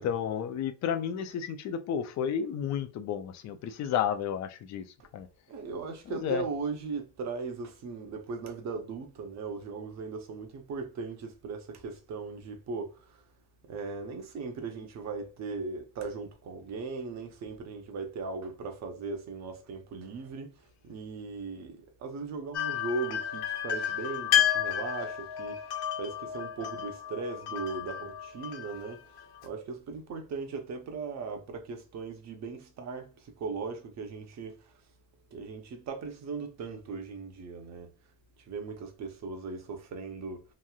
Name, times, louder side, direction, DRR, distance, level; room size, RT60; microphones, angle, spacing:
voice 1, 0.0-5.3 6.1-6.4, left 8 dB, 45° left, 0.5 m, -32 dB
voice 2, 5.5-13.2 13.7-25.6 25.9-34.7 35.3-37.9 38.4-40.4, right 4 dB, 40° right, 0.8 m, -38 dB
sound 1, 22.5-29.5, left 10 dB, 65° left, 1.1 m, -31 dB
3.0 x 2.6 x 2.3 m
cardioid pair, 125°, 41 cm